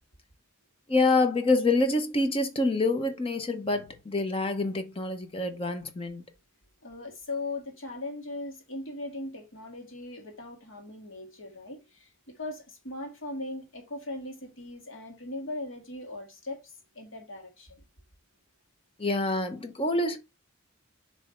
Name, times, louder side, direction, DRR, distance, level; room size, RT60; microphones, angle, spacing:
voice 1, 0.9-6.2 19.0-20.2, left 2 dB, 25° left, 0.8 m, -26 dB
voice 2, 6.8-17.8, left 2 dB, 70° left, 1.9 m, -39 dB
6.9 x 3.2 x 4.4 m
head